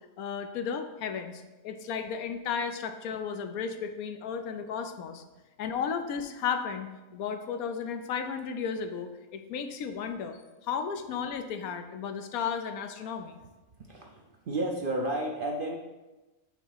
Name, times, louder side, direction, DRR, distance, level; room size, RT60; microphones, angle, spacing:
voice 1, 0.2-5.2 5.6-13.4, left 6 dB, 85° left, 8 dB, 1.1 m, -34 dB
voice 2, 13.8-15.8, right 1 dB, 55° right, 1 dB, 0.6 m, -32 dB
6.1 x 3.5 x 5.7 m, 1.1 s
omnidirectional pair, 1.5 m